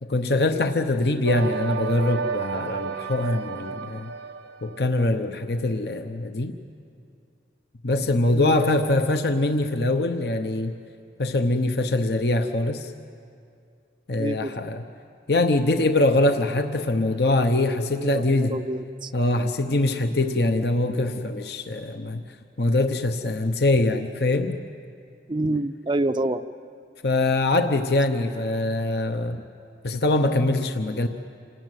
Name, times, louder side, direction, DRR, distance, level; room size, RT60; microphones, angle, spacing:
voice 1, 0.0-4.1 4.6-6.6 7.8-10.8 11.2-12.9 14.1-14.8 15.3-18.6 19.1-22.2 22.6-24.6 27.0-29.4 29.8-31.1, left 2 dB, 60° left, 7 dB, 0.9 m, -23 dB
sound 1, 1.3-4.9, right 5 dB, 85° right, 0.9 m, -31 dB
voice 2, 14.1-14.5 17.9-19.1 25.3-26.5, right 2 dB, 25° right, 10 dB, 0.5 m, -27 dB
27.5 x 18.5 x 9.3 m, 2.5 s
head